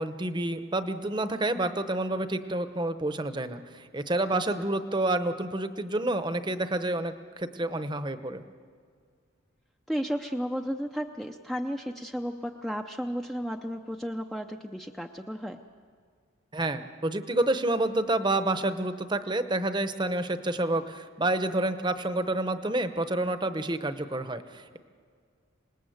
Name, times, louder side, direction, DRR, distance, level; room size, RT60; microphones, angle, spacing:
voice 1, 0.0-8.4 16.5-24.8, right 2 dB, 20° right, 10 dB, 0.9 m, -29 dB
voice 2, 4.3-4.7 9.9-15.6, equal, ahead, 3 dB, 0.6 m, -33 dB
26.5 x 20.0 x 7.9 m, 2.1 s
head